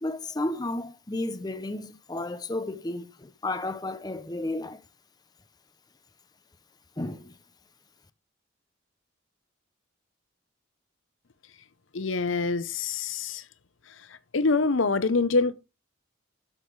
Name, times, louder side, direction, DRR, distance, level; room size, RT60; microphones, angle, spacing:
voice 1, 0.0-4.8 7.0-7.3, left 2 dB, 20° left, 0.7 m, -32 dB
voice 2, 11.9-13.4 14.3-15.5, left 3 dB, 70° left, 0.7 m, -25 dB
12.5 x 5.7 x 4.7 m
head